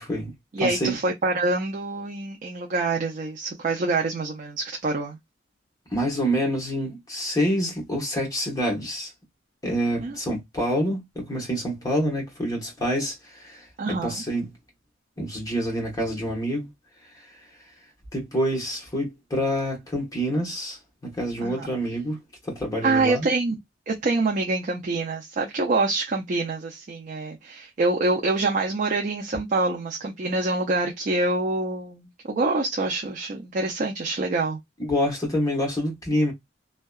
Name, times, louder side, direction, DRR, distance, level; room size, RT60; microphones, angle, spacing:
voice 1, 0.0-1.0 5.9-9.1 9.6-14.6 15.2-16.7 18.1-20.8 21.0-23.3 34.8-36.3, equal, 20° left, 1.0 m, -27 dB
voice 2, 0.5-5.2 10.0-10.2 13.8-14.2 21.4-21.7 22.8-23.6 23.9-34.6, right 3 dB, 45° right, 0.4 m, -26 dB
2.7 x 2.2 x 2.3 m
head